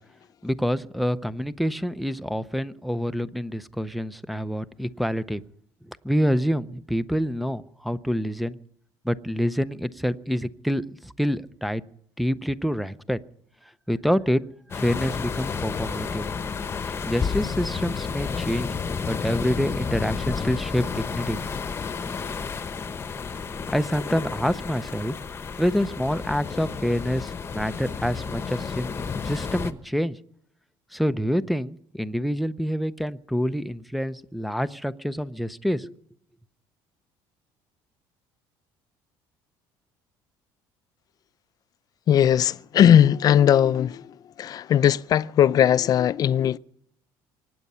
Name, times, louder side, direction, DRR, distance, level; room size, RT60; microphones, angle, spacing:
voice 1, 0.4-5.4 5.8-8.6 9.0-11.8 12.2-13.2 13.9-14.4 14.7-16.3 17.1-18.8 19.1-21.4 23.5-25.2 25.6-28.9 29.2-30.2 30.9-36.0, equal, ahead, 0.6 m, -27 dB
sound 1, 14.7-29.7, left 5 dB, 25° left, 1.1 m, -31 dB
voice 2, 42.1-46.6, left 10 dB, 45° left, 0.5 m, -19 dB
24.0 x 9.5 x 5.6 m
cardioid pair, 130°, 9 cm